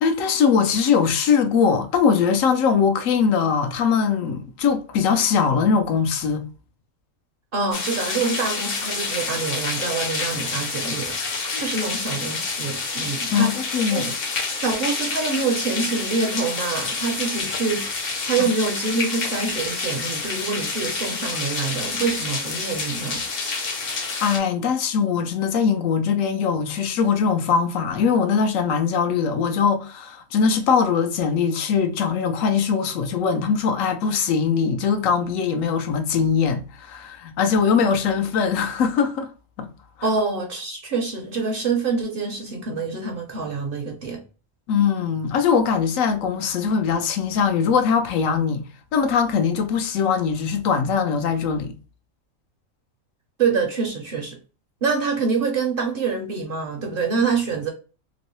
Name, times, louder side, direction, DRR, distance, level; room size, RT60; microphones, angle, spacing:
voice 1, 0.0-6.5 11.5-11.6 13.3-14.1 24.2-39.3 39.6-39.7 44.7-48.6 48.9-51.7, left 6 dB, 80° left, 1.0 m, -21 dB
voice 2, 7.5-13.6 13.9-14.1 14.6-23.2 40.0-44.2 53.4-54.4 54.8-57.7, right 4 dB, 55° right, 0.6 m, -26 dB
sound 1, 7.7-24.4, left 4 dB, 50° left, 0.8 m, -28 dB
3.0 x 2.7 x 2.9 m
omnidirectional pair, 1.4 m